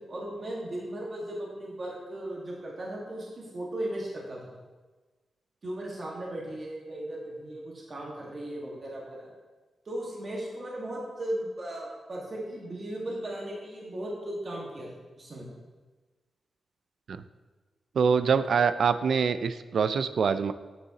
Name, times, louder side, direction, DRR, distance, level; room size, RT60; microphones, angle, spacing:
voice 1, 0.0-4.5 5.6-9.3 9.8-14.9 15.2-15.5, right 1 dB, 45° right, -4 dB, 1.6 m, -37 dB
voice 2, 18.0-20.5, right 6 dB, 70° right, 12 dB, 0.3 m, -24 dB
9.1 x 6.9 x 2.9 m, 1.3 s
wide cardioid pair, 105°, 0 cm